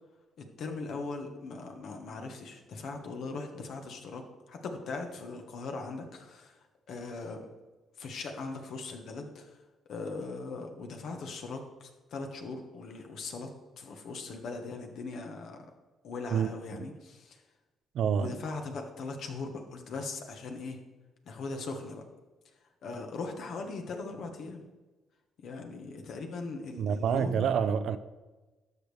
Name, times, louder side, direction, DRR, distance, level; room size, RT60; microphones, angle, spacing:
voice 1, 0.4-6.6 6.9-7.5 8.0-9.6 9.9-13.5 13.8-15.6 16.0-17.4 18.1-20.8 21.2-22.0 22.8-24.6 25.4-27.5, left 3 dB, 70° left, 1.4 m, -39 dB
voice 2, 16.3-16.9 17.9-18.4 26.8-28.0, right 7 dB, 70° right, 0.4 m, -28 dB
12.0 x 6.5 x 3.4 m
cardioid pair, 90°, 0 cm